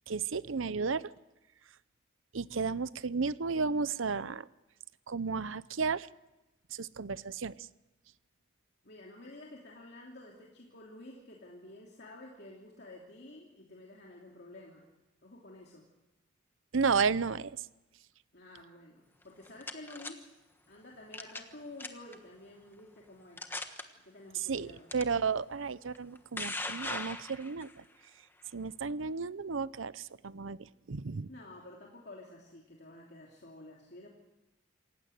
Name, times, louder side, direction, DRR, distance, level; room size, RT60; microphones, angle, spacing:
voice 1, 0.1-1.1 2.3-4.5 5.1-6.1 6.7-7.5 16.7-17.6 24.5-27.8 28.5-31.3, right 5 dB, 80° right, 17 dB, 0.7 m, -33 dB
voice 2, 8.8-14.9 15.2-15.9 18.3-20.3 20.7-23.5 24.0-24.9 31.3-34.1, left 2 dB, 55° left, -2 dB, 2.9 m, -51 dB
sound 1, 19.2-20.1 21.1-21.5 21.8-22.1 22.8-22.9 23.4-23.8 24.9-25.0 25.9-27.7, left 2 dB, 10° left, 1.3 m, -39 dB
27.5 x 15.5 x 7.9 m, 1.0 s
head